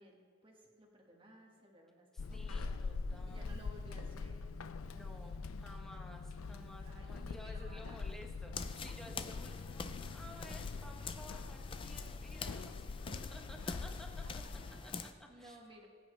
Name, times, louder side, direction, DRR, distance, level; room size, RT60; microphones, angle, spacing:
voice 1, 0.0-2.8 3.2-4.5 6.8-8.0 13.1-13.2 14.6-14.9 15.3-15.9, equal, 25° right, -1 dB, 1.6 m, -58 dB
voice 2, 2.1-3.6 4.8-12.9 13.3-14.4 14.8-14.9 15.2-15.6, equal, ahead, 1 dB, 1.1 m, -54 dB
Walk footsteps / Squeak, 2.2-14.8, left 4 dB, 85° left, 0.5 m, -44 dB
sound 1, 8.5-15.1, left 4 dB, 25° left, 0.4 m, -45 dB
22.0 x 8.9 x 3.3 m, 2.1 s
head